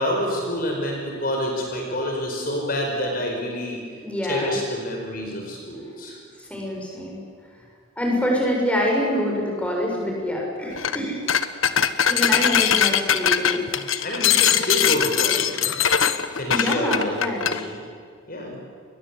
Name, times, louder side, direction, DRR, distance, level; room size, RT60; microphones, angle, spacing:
voice 1, 0.0-3.8 4.3-6.2 12.1-12.5 13.7-15.8 16.3-17.8 18.3-18.6, left 1 dB, 45° left, 1 dB, 5.0 m, -28 dB
voice 2, 4.0-4.6 6.4-7.2 8.0-11.2 12.1-13.6 16.5-17.5, equal, 5° left, -2 dB, 7.1 m, -25 dB
sound 1, 10.8-11.0 11.3-17.6, left 8 dB, 90° left, 1.4 m, -21 dB
30.0 x 22.5 x 8.6 m, 2.2 s
head